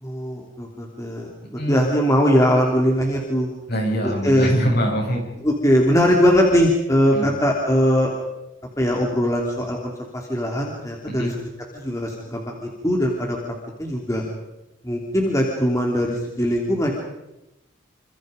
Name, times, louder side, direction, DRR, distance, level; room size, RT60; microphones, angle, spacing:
voice 1, 0.0-3.5 4.0-4.5 5.4-8.1 8.8-11.3 11.7-13.4 13.8-14.2 14.8-16.9, equal, 15° left, 0 dB, 3.0 m, -21 dB
voice 2, 1.6-1.9 3.7-5.2 7.1-7.4 11.1-11.3, equal, 50° left, 0 dB, 7.8 m, -23 dB
28.0 x 26.0 x 5.2 m, 0.93 s
head